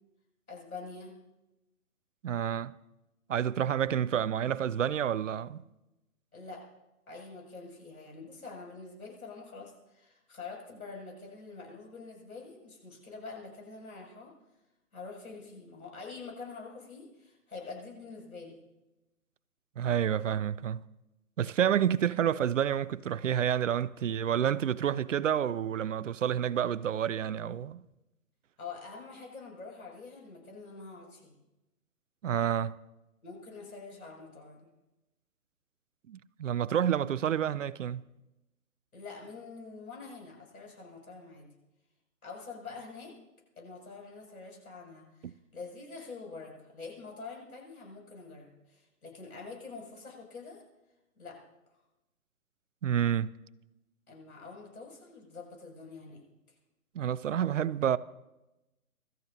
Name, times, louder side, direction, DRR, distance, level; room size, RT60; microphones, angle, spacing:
voice 1, 0.5-1.1 6.3-6.6 7.1-14.3 14.9-18.6 28.6-31.3 33.2-34.7 38.9-41.5 42.2-43.1 43.6-50.6 51.2-51.4 54.1-56.2, left 4 dB, 75° left, 7.3 m, -46 dB
voice 2, 2.2-2.8 3.3-5.6 19.8-20.8 21.4-27.8 32.2-32.8 36.1-38.0 45.2-45.3 52.8-53.3 56.9-58.0, right 9 dB, 60° right, 0.5 m, -29 dB
27.0 x 13.5 x 2.9 m
figure-of-eight pair, 140°, 44 cm